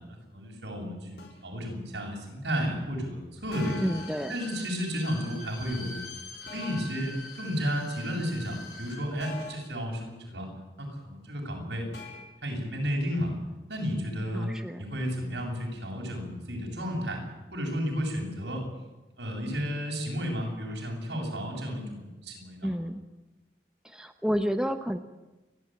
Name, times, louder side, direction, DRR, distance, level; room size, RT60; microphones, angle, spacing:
voice 1, 0.3-3.8 4.3-6.0 6.5-10.5 10.8-11.8 12.4-13.4 13.7-14.5 14.8-17.2 17.5-18.6 19.2-22.7, equal, 80° right, 0 dB, 7.6 m, -32 dB
sound 1, 1.2-1.5 3.5-4.3 6.5-7.0 9.2-9.8 11.9-12.2, left 4 dB, 75° left, 4.6 m, -43 dB
Bowed string instrument, 3.4-9.0 9.3-9.4, left 2 dB, 60° left, 7.1 m, -44 dB
voice 2, 3.8-4.3 14.3-14.8 22.6-23.0 23.9-25.0, equal, 5° right, 7 dB, 0.9 m, -30 dB
29.0 x 12.5 x 9.2 m, 1.1 s
head